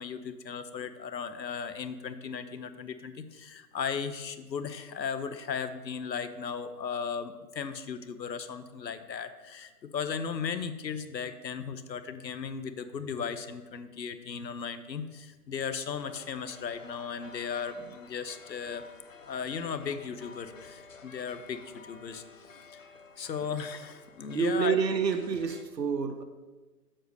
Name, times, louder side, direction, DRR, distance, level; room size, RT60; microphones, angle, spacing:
voice 1, 0.0-18.8 19.2-22.2 23.2-24.8, left 6 dB, 85° left, 11 dB, 1.0 m, -36 dB
sound 1, 16.0-25.6, left 4 dB, 50° left, 0.9 m, -52 dB
voice 2, 24.3-26.2, right 6 dB, 80° right, 8 dB, 1.2 m, -28 dB
7.7 x 5.3 x 6.6 m, 1.3 s
hypercardioid pair, 180°, 49 cm